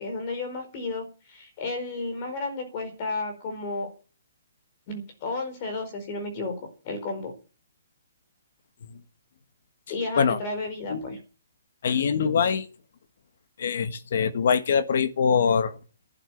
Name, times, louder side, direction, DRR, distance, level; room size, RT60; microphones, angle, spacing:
voice 1, 0.0-3.9 4.9-6.5 6.8-7.3 9.9-11.2, left 3 dB, 25° left, 4.5 m, -32 dB
voice 2, 11.8-12.7 13.6-15.8, left 6 dB, 45° left, 1.6 m, -23 dB
12.0 x 10.0 x 8.6 m
hypercardioid pair, 180°, 0 cm